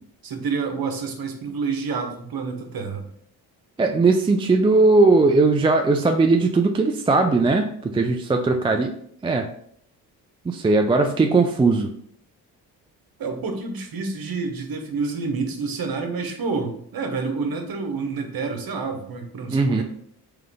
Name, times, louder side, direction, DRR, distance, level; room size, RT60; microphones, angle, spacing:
voice 1, 0.2-3.1 13.2-19.8, right 4 dB, 50° right, 5 dB, 1.1 m, -28 dB
voice 2, 3.8-8.9 9.2-9.5 10.5-11.9 19.5-19.8, right 3 dB, 15° right, 4 dB, 0.3 m, -19 dB
3.7 x 3.4 x 3.4 m, 0.66 s
hypercardioid pair, 55°, 46 cm